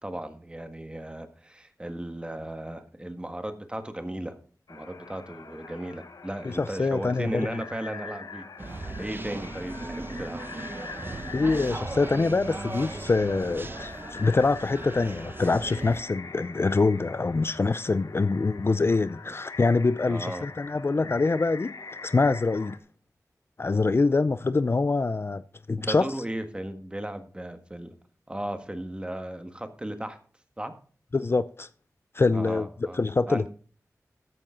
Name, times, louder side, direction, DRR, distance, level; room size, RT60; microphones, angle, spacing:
voice 1, 0.0-4.4 4.7-10.6 20.1-20.5 25.8-27.9 28.3-30.2 30.6-30.7 32.3-33.0 33.3-33.5, right 1 dB, 15° right, 1.6 m, -36 dB
sound 1, 4.7-22.8, left 4 dB, 80° left, 1.1 m, -44 dB
voice 2, 6.4-7.5 11.3-21.7 22.0-22.8 23.6-25.4 25.7-26.1 31.1-31.7 32.1-32.7 32.9-33.5, left 3 dB, 40° left, 0.5 m, -25 dB
sound 2, 8.6-16.0, right 2 dB, 35° right, 1.0 m, -37 dB
13.5 x 9.0 x 3.8 m
wide cardioid pair, 75°, 6 cm